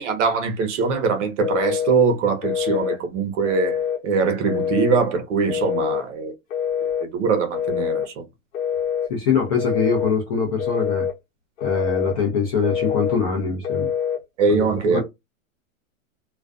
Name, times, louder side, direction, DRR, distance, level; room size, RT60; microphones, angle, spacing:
voice 1, 0.0-6.3 7.0-8.2 14.4-15.0, right 5 dB, 60° right, 0.8 m, -22 dB
Telephone, 1.4-2.0 2.4-3.0 3.4-4.0 4.5-5.0 5.5-6.1 6.5-7.1 7.5-8.1 8.5-9.1 9.6-10.1 10.6-11.2 11.6-12.2 12.6-13.2 13.6-14.2, left 8 dB, 70° left, 1.0 m, -25 dB
voice 2, 9.1-11.1 11.6-13.9 14.5-15.0, left 5 dB, 30° left, 0.5 m, -23 dB
2.4 x 2.2 x 2.4 m
supercardioid pair, 160°, 41 cm